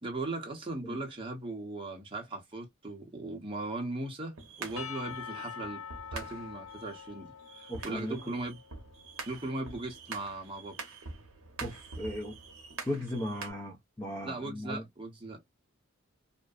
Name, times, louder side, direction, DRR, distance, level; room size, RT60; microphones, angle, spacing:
voice 1, 0.0-5.8 6.1-8.6 9.3-10.8 14.2-15.4, right 2 dB, 25° right, 0.8 m, -38 dB
sound 1, 4.4-13.5, right 4 dB, 80° right, 0.8 m, -45 dB
Percussion / Church bell, 4.8-9.1, left 7 dB, 85° left, 0.4 m, -45 dB
voice 2, 7.7-8.1 11.6-12.4 12.8-14.8, left 1 dB, 15° left, 0.6 m, -37 dB
2.6 x 2.1 x 2.2 m
head